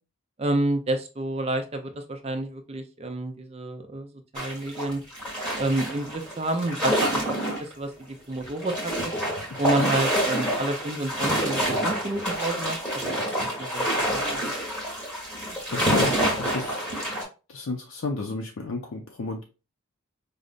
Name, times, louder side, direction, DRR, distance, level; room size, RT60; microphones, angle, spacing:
voice 1, 0.4-5.0 5.6-9.1 9.6-14.4, right 2 dB, 25° right, 6 dB, 0.4 m, -30 dB
sound 1, 4.3-7.7 8.0-8.1 8.4-17.2, equal, 5° left, 1.2 m, -27 dB
voice 2, 15.7-16.8 17.5-19.4, left 3 dB, 65° left, 2 dB, 0.4 m, -32 dB
5.0 x 2.0 x 2.4 m, 0.32 s
head